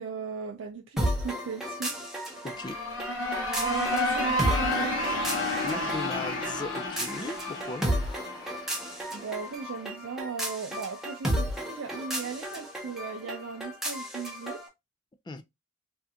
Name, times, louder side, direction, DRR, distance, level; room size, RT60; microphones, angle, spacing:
voice 1, 0.0-2.1 3.6-5.2 9.1-14.6, right 5 dB, 85° right, 0.4 m, -37 dB
sound 1, 1.0-14.7, equal, ahead, 0.8 m, -34 dB
sound 2, 2.4-9.1, left 1 dB, 75° left, 1.0 m, -31 dB
voice 2, 2.4-2.8 5.6-7.9 15.3-15.4, left 3 dB, 20° left, 0.3 m, -37 dB
3.4 x 2.4 x 2.7 m
head